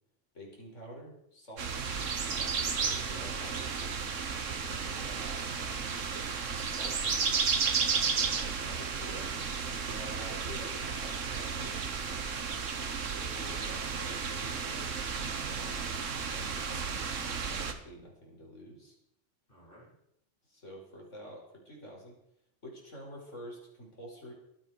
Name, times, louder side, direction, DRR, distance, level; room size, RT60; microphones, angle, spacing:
voice 1, 0.3-1.7 2.3-4.0 6.6-7.0 8.6-11.9 13.0-16.8 17.4-19.0 20.5-22.1 22.6-24.3, equal, 70° left, -1 dB, 5.5 m, -48 dB
sound 1, 1.6-17.7, right 5 dB, 80° right, 1.7 m, -33 dB
voice 2, 4.2-6.2 19.5-19.9, equal, 45° left, -5 dB, 6.2 m, -55 dB
23.5 x 9.3 x 4.8 m, 0.75 s
omnidirectional pair, 1.3 m